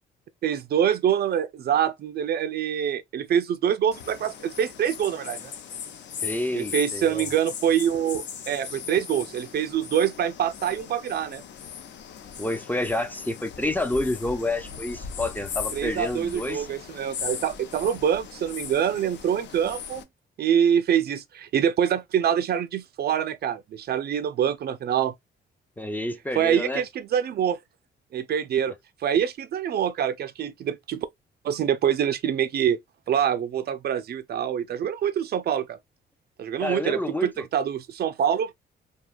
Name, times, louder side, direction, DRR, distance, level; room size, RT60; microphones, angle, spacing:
voice 1, 0.4-5.5 6.5-11.4 15.7-20.0 20.4-25.1 26.4-27.6 28.1-28.7 29.0-31.1 31.4-32.8 33.1-35.8 36.4-38.5, right 9 dB, 55° right, 0.4 m, -25 dB
sound 1, 3.9-20.0, left 7 dB, 65° left, 0.6 m, -38 dB
voice 2, 6.2-7.3 12.4-16.7 25.8-26.8 36.6-37.4, left 1 dB, 10° left, 0.4 m, -29 dB
2.7 x 2.3 x 2.3 m
cardioid pair, 90°, 20 cm